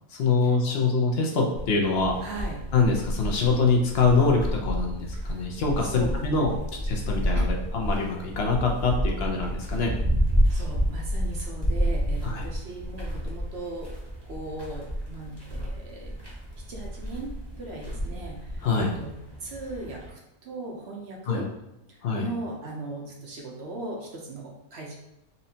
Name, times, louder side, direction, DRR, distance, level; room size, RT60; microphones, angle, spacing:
voice 1, 0.1-2.2 2.7-6.5 6.8-9.9 12.2-12.4 18.6-18.9 21.3-21.4 22.0-22.3, left 4 dB, 55° left, 0 dB, 0.7 m, -24 dB
sound 1, 1.5-20.1, equal, 20° right, 0.8 m, -30 dB
voice 2, 2.2-2.6 5.3-5.4 5.8-6.1 7.3-7.5 10.4-13.9 14.3-16.2 16.7-17.3 17.6-19.1 19.4-21.5 21.9-25.0, right 2 dB, 55° right, -1 dB, 0.8 m, -38 dB
4.2 x 2.7 x 2.7 m, 0.91 s
omnidirectional pair, 1.6 m